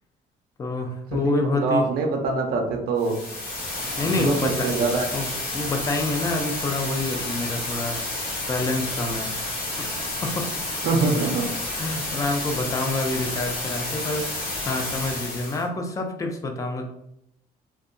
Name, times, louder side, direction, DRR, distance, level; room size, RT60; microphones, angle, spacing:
voice 1, 0.6-1.8 4.0-4.7 5.1-8.2 8.5-9.3 9.8-11.3 11.7-16.9, left 2 dB, 20° left, 4 dB, 0.4 m, -28 dB
voice 2, 1.1-3.2 4.0-5.1 10.8-11.5, right 4 dB, 65° right, 2 dB, 0.5 m, -24 dB
sound 1, 3.0-15.6, left 2 dB, 90° left, 1.0 m, -30 dB
2.6 x 2.2 x 2.5 m, 0.81 s
cardioid pair, 110°, 17 cm